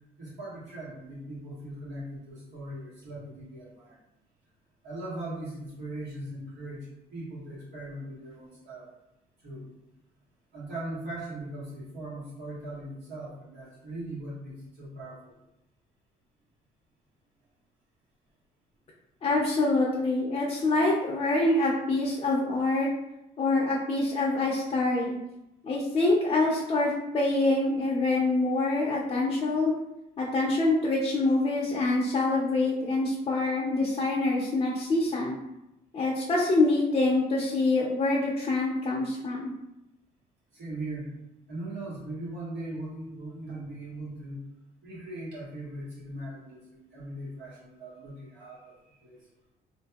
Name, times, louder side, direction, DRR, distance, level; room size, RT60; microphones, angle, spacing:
voice 1, 0.2-4.0 4.8-8.9 9.4-9.6 10.5-15.3 40.5-41.1 41.5-44.4 44.8-49.2, right 1 dB, 80° right, -7 dB, 1.4 m, -39 dB
voice 2, 19.2-22.9 23.4-25.2 25.6-29.7 30.2-35.4 35.9-39.5, left 2 dB, 35° left, -4 dB, 0.5 m, -25 dB
2.9 x 2.6 x 2.3 m, 0.89 s
cardioid pair, 110°, 17 cm